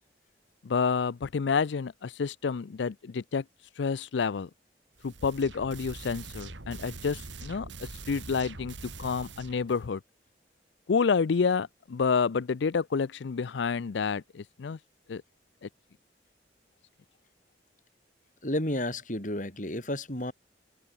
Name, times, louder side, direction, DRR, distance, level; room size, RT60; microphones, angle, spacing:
voice 1, 0.6-3.4 3.7-4.5 5.0-10.0 10.9-14.8 15.1-15.2 15.6-15.7, left 5 dB, 80° left, 0.5 m, -29 dB
sound 1, 5.0-9.8, right 3 dB, 90° right, 2.4 m, -43 dB
voice 2, 18.4-20.3, left 1 dB, 45° left, 5.0 m, -31 dB
head